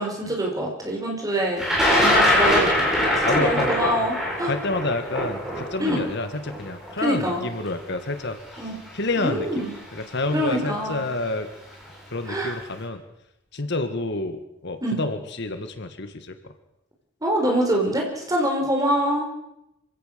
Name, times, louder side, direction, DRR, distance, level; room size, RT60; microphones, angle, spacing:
voice 1, 0.0-1.6 2.0-2.9 3.3-4.5 5.8-6.0 7.0-7.4 8.6-8.8 9.2-9.7 10.3-11.0 12.3-12.5 14.8-15.0 17.2-19.3, equal, 20° right, -1 dB, 5.5 m, -24 dB
Thunder, 1.6-7.6 8.5-8.6 9.8-10.0 10.3-10.8, left 1 dB, ahead, 7.8 m, -22 dB
voice 2, 3.2-4.1 4.4-9.7 9.9-11.5 12.1-13.0 13.5-16.5, left 2 dB, 60° left, 8 dB, 1.9 m, -29 dB
26.0 x 16.5 x 6.9 m, 0.86 s
head